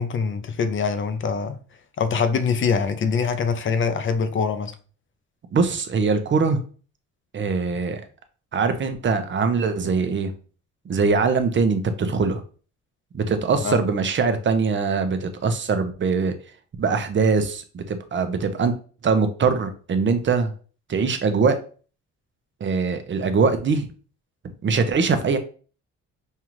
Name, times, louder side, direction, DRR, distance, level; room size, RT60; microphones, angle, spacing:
voice 1, 0.0-1.6 2.0-4.7 13.6-13.8, left 5 dB, 40° left, 0.6 m, -23 dB
voice 2, 5.5-6.6 7.3-8.0 8.5-10.3 10.9-12.4 13.1-16.3 16.8-18.7 19.0-20.5 20.9-21.6 22.6-23.9 24.6-25.4, right 5 dB, 40° right, 0.7 m, -22 dB
5.5 x 2.4 x 3.0 m
cardioid pair, 90°, 30 cm